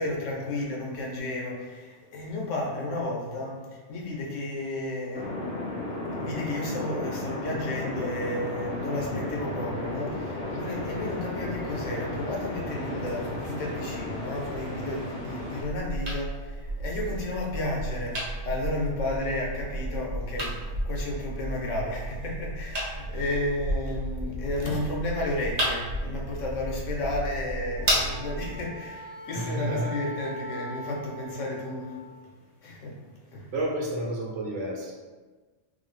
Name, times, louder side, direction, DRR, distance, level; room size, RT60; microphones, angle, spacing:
voice 1, 0.0-5.4 6.2-32.0 32.6-33.5, left 1 dB, 85° left, -2 dB, 1.1 m, -32 dB
sound 1, 5.1-15.6, left 1 dB, 30° left, 1.1 m, -34 dB
sound 2, 15.6-28.6, right 1 dB, 45° right, 0.6 m, -32 dB
Wind instrument woodwind instrument, 27.7-32.1, right 1 dB, 20° right, 0.8 m, -41 dB
voice 2, 29.3-29.9 33.5-34.9, right 1 dB, 75° right, -2 dB, 1.1 m, -30 dB
4.0 x 2.0 x 3.2 m, 1.3 s
omnidirectional pair, 1.2 m